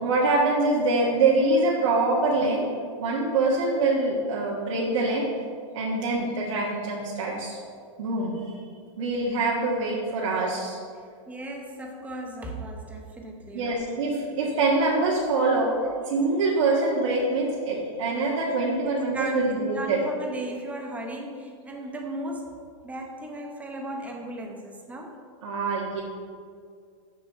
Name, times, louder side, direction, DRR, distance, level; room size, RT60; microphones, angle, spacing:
voice 1, 0.0-2.7 3.0-5.3 5.7-7.6 8.0-8.6 9.0-10.8 13.5-15.7 16.1-20.0 25.4-26.0, right 3 dB, 75° right, -5 dB, 1.5 m, -24 dB
voice 2, 11.3-13.8 18.8-22.5 22.8-25.1, right 1 dB, 10° right, 2 dB, 0.9 m, -36 dB
6.9 x 6.5 x 5.5 m, 2.2 s
supercardioid pair, 145°, 16 cm